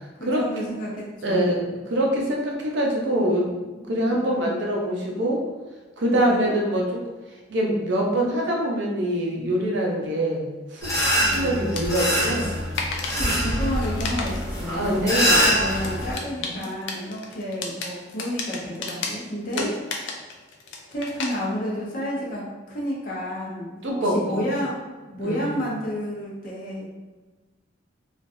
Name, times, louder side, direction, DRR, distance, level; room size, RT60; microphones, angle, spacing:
voice 1, 0.2-1.5 4.0-4.6 6.2-6.5 11.2-11.6 12.4-12.6 13.1-19.7 20.9-26.9, equal, 45° left, -5 dB, 0.8 m, -31 dB
voice 2, 1.2-3.6 3.9-5.4 6.0-7.0 7.5-10.9 11.2-12.6 13.2-13.4 14.7-15.6 16.4-16.7 19.5-19.7 23.8-24.4 25.2-25.6, right 1 dB, 65° right, -1 dB, 0.6 m, -24 dB
sound 1, 10.8-16.2, equal, 20° left, 0.9 m, -24 dB
sound 2, 11.3-21.3, left 4 dB, 70° left, 0.4 m, -34 dB
3.1 x 2.4 x 2.6 m, 1.2 s
head